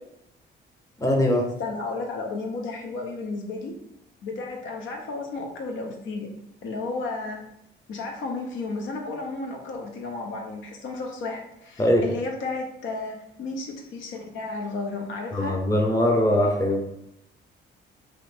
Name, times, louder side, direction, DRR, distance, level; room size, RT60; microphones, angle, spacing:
voice 1, 1.0-1.5 11.8-12.0 15.3-17.0, left 1 dB, 15° left, 2 dB, 0.6 m, -22 dB
voice 2, 1.6-3.7 4.2-6.3 6.6-7.4 7.9-15.6, left 3 dB, 75° left, 2 dB, 0.7 m, -33 dB
3.1 x 2.6 x 3.3 m, 0.80 s
cardioid pair, 90°, 20 cm